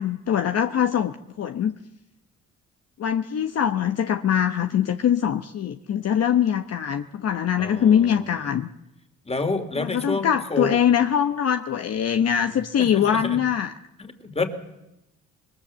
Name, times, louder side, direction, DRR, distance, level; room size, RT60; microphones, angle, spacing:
voice 1, 0.0-1.7 3.0-8.7 9.8-13.7, left 9 dB, 55° left, 7 dB, 1.0 m, -23 dB
voice 2, 7.6-8.4 9.2-10.8 12.2-12.4 12.8-13.4 14.0-14.5, left 3 dB, 20° left, 8 dB, 2.9 m, -29 dB
26.5 x 21.0 x 7.5 m, 0.91 s
cardioid pair, 90°, 30 cm